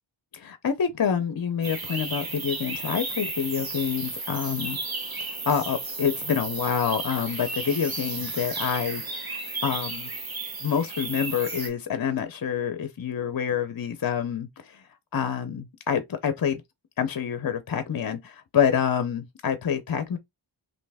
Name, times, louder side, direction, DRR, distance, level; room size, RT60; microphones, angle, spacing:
voice 1, 0.3-5.1 5.5-10.1 10.6-14.8 15.1-16.6 17.0-20.2, left 7 dB, 50° left, 0.6 m, -27 dB
sound 1, 1.6-11.7, right 3 dB, 50° right, 1.3 m, -33 dB
3.2 x 2.7 x 3.4 m
wide cardioid pair, 75°, 46 cm